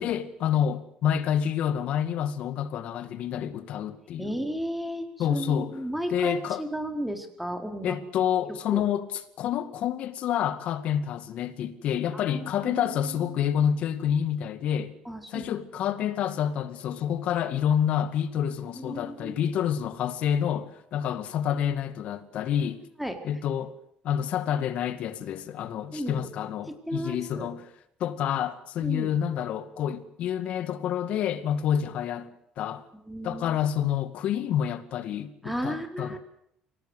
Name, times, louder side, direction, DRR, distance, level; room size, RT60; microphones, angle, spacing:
voice 1, 0.0-4.4 5.2-5.7 6.1-6.6 7.8-15.0 15.3-22.8 23.2-23.7 24.0-27.7 28.0-32.9 33.2-36.2, left 9 dB, 65° left, 2.2 m, -28 dB
voice 2, 4.2-8.0 8.7-8.8 12.1-12.8 15.0-15.5 18.7-19.4 23.0-23.2 25.9-26.3 26.7-27.5 28.8-29.1 33.1-33.6 35.4-36.2, equal, 5° right, 4.5 m, -34 dB
Keyboard (musical), 12.6-14.4, right 5 dB, 65° right, 3.1 m, -45 dB
24.0 x 18.5 x 8.3 m
cardioid pair, 95°, 2 cm